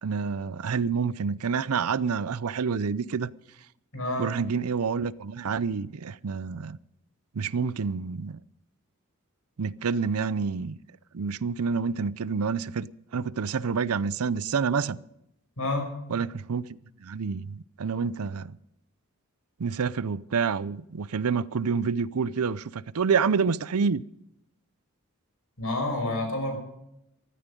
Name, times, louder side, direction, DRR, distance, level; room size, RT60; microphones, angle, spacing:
voice 1, 0.0-3.3 4.2-6.8 7.3-8.4 9.6-10.8 11.1-12.9 13.1-15.0 16.1-18.6 19.6-24.0, right 5 dB, 85° right, 0.5 m, -28 dB
voice 2, 3.9-4.3 15.6-15.9 25.6-26.6, left 2 dB, 70° left, 5.9 m, -29 dB
15.0 x 13.5 x 5.2 m
head